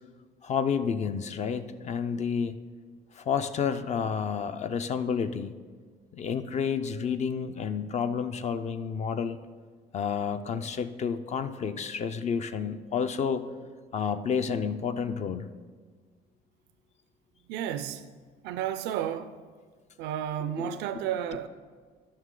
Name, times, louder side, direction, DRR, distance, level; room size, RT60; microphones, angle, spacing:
voice 1, 0.4-2.6 3.1-5.6 6.1-9.4 9.9-13.4 13.9-15.5 20.6-20.8, left 6 dB, 45° left, 0.5 m, -30 dB
voice 2, 17.5-18.0 18.4-19.4 20.0-21.5, right 10 dB, 90° right, 0.4 m, -32 dB
13.0 x 5.7 x 3.8 m
cardioid pair, 110°, 17 cm